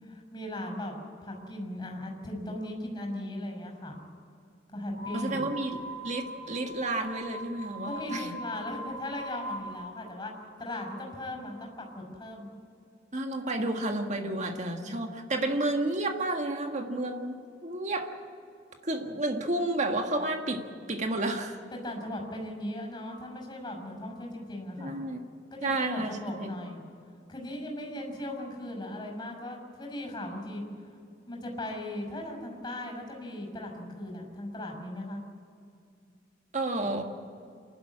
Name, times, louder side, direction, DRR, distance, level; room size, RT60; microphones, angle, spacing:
voice 1, 0.0-4.0 4.7-5.5 7.9-10.3 10.6-12.5 14.8-14.9 21.7-25.0 25.5-26.8 27.3-30.6 31.3-35.2, left 1 dB, 20° left, 1 dB, 6.2 m, -38 dB
sound 1, 4.9-9.9, right 1 dB, 65° right, 1.5 m, -41 dB
voice 2, 5.1-8.3 13.1-18.1 18.8-21.6 24.8-25.2 25.6-26.5 36.5-37.0, right 2 dB, 40° right, 4 dB, 1.8 m, -31 dB
27.5 x 12.0 x 8.7 m, 2.4 s
head